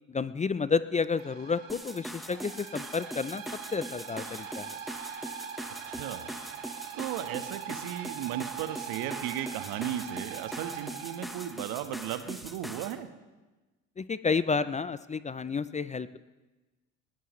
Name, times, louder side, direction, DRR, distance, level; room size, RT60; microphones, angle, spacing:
voice 1, 0.1-3.4 3.7-4.8 14.0-16.2, left 5 dB, 20° left, 15 dB, 0.6 m, -30 dB
sound 1, 1.2-12.0, right 9 dB, 85° right, 1.6 m, -42 dB
sound 2, 1.7-13.0, equal, ahead, 1.2 m, -42 dB
voice 2, 5.8-6.3 6.9-13.1, right 11 dB, 65° right, 9 dB, 1.4 m, -36 dB
20.0 x 19.0 x 3.2 m, 1.2 s
hypercardioid pair, 65°, 38 cm